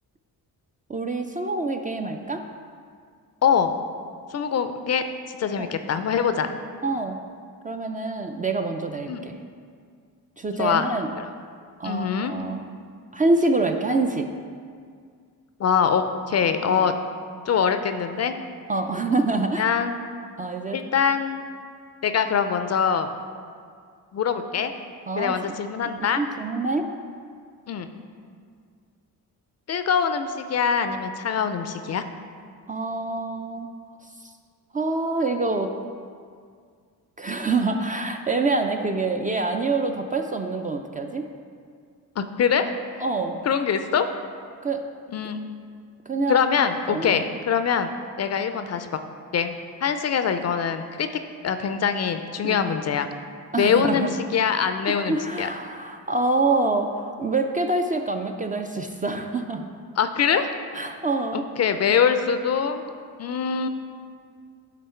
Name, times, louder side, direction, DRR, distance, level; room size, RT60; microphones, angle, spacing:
voice 1, 0.9-2.4 5.6-5.7 6.8-7.2 7.6-9.4 10.4-11.1 11.8-12.7 13.1-14.3 16.7-16.8 18.7-19.7 20.4-20.8 25.1-25.4 26.1-26.9 32.7-33.7 34.2-34.3 34.7-35.7 37.2-41.3 43.0-43.4 44.6-44.9 46.1-46.4 46.9-47.2 52.4-52.6 53.5-54.1 54.9-59.7 60.7-61.5, right 3 dB, 20° right, 4 dB, 0.4 m, -26 dB
voice 2, 3.4-3.7 4.3-6.5 9.1-9.3 10.6-10.9 11.2-11.3 11.8-12.3 15.6-16.9 17.5-18.3 19.6-20.0 20.7-21.4 22.0-23.1 24.1-24.7 25.2-26.2 27.7-27.9 29.7-32.0 42.2-42.7 43.5-44.1 45.1-45.4 46.3-47.9 48.2-48.9 49.3-49.5 49.8-51.1 51.4-53.1 53.6-55.5 60.0-60.5 61.3-62.8 63.2-63.7, left 7 dB, 40° left, 9 dB, 0.4 m, -23 dB
9.1 x 3.8 x 4.3 m, 2.1 s
cardioid pair, 85°, 39 cm